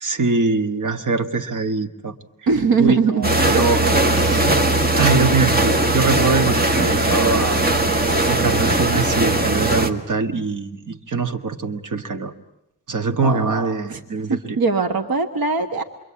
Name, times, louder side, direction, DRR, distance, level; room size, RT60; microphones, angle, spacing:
voice 1, 0.0-2.1 2.8-4.5 5.0-12.3 12.9-14.6, right 4 dB, 55° right, 4 dB, 1.6 m, -23 dB
voice 2, 2.5-3.3 13.2-13.6 13.9-14.0 14.3-15.8, right 4 dB, 70° right, 6 dB, 1.4 m, -20 dB
sound 1, 3.2-9.9, right 2 dB, 25° right, 1.6 m, -19 dB
27.5 x 23.0 x 8.6 m, 0.88 s
wide cardioid pair, 170°, 36 cm